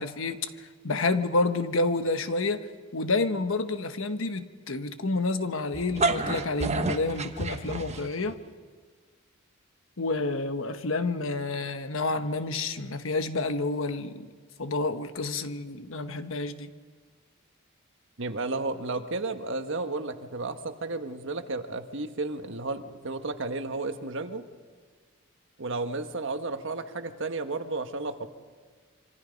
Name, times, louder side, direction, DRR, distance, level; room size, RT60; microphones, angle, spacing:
voice 1, 0.0-2.7 2.9-8.4 10.0-14.3 14.6-16.7, left 3 dB, 65° left, 1.2 m, -29 dB
sound 1, 5.7-8.3, right 2 dB, 30° right, 1.3 m, -29 dB
voice 2, 18.2-24.4 25.6-28.3, right 3 dB, 65° right, 1.4 m, -33 dB
26.5 x 25.0 x 5.3 m
head